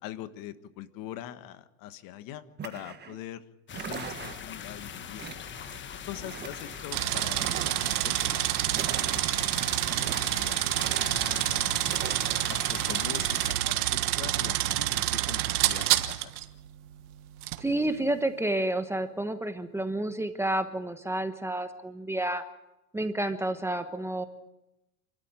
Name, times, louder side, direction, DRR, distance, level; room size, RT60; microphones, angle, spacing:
voice 1, 0.0-3.4 3.7-5.2 6.0-9.4 9.9-10.7 11.0-11.9 12.5-16.2, left 12 dB, 45° left, 12 dB, 1.5 m, -43 dB
sound 1, 2.6-3.2 3.7-4.6 5.2-5.8 6.1-6.9 7.3-8.1 8.7-9.5 9.9-10.4 10.7-11.5 11.8-12.5, right 7 dB, 20° right, 1.6 m, -41 dB
sound 2, 3.7-13.5, left 7 dB, 25° left, 1.4 m, -42 dB
sound 3, 6.9-16.4 17.4-17.6, right 15 dB, 75° right, 1.5 m, -28 dB
voice 2, 17.6-22.4 22.9-24.2, right 1 dB, 5° right, 8 dB, 1.1 m, -30 dB
28.0 x 13.0 x 8.9 m, 0.95 s
supercardioid pair, 125°, 45 cm